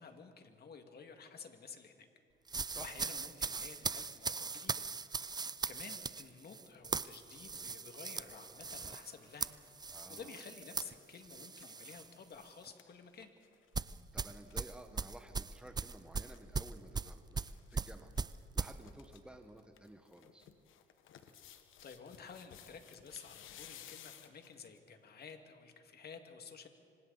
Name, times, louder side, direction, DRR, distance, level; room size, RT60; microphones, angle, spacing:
voice 1, 0.0-2.1 2.5-4.8 5.3-9.5 9.8-13.3 21.4-26.7, left 5 dB, 55° left, 5 dB, 2.1 m, -52 dB
sound 1, 2.5-12.1 12.4-12.7 13.7-18.7, right 4 dB, 20° right, 0.5 m, -39 dB
sound 2, 5.3-10.5, left 2 dB, 15° left, 7.7 m, -68 dB
sound 3, 9.1-9.2 9.5-13.8 14.1-14.2 14.3-14.6 15.9-16.8 17.4-17.9 18.1-18.2 18.6-19.2 19.6-24.8 25.3-25.4, left 10 dB, 80° left, 1.3 m, -57 dB
voice 2, 9.9-10.4 14.1-20.5, right 1 dB, 5° right, 5 dB, 1.4 m, -54 dB
26.0 x 25.5 x 4.1 m, 2.3 s
cardioid pair, 90°, 20 cm